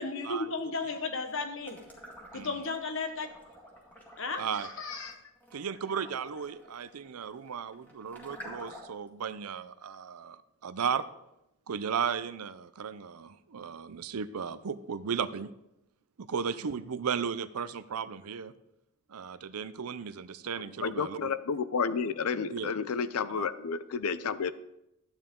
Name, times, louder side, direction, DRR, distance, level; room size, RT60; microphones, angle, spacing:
voice 1, 0.0-1.8 2.3-3.3 4.2-5.2, left 3 dB, 60° left, 6 dB, 1.2 m, -34 dB
sound 1, 1.6-2.8 3.2-9.1, equal, 10° left, 2.0 m, -50 dB
voice 2, 4.4-4.7 5.5-11.1 11.7-15.5 16.2-18.5 19.1-21.3 22.5-22.7 23.4-23.5, right 6 dB, 85° right, 15 dB, 0.5 m, -35 dB
voice 3, 20.8-24.5, left 5 dB, 80° left, 14 dB, 0.5 m, -31 dB
12.5 x 9.0 x 3.7 m, 0.86 s
head